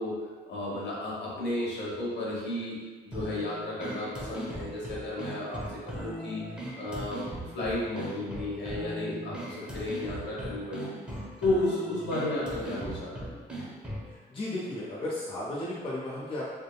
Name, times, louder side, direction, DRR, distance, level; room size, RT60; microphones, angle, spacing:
voice 1, 0.0-2.8 3.0-7.3 7.5-11.0 11.4-13.3, left 1 dB, 60° left, -7 dB, 1.1 m, -33 dB
sound 1, 3.1-14.1, right 1 dB, 5° right, 0.9 m, -39 dB
voice 2, 14.3-16.5, left 1 dB, 25° left, -6 dB, 0.6 m, -34 dB
3.5 x 2.1 x 2.3 m, 1.4 s
cardioid pair, 90°, 20 cm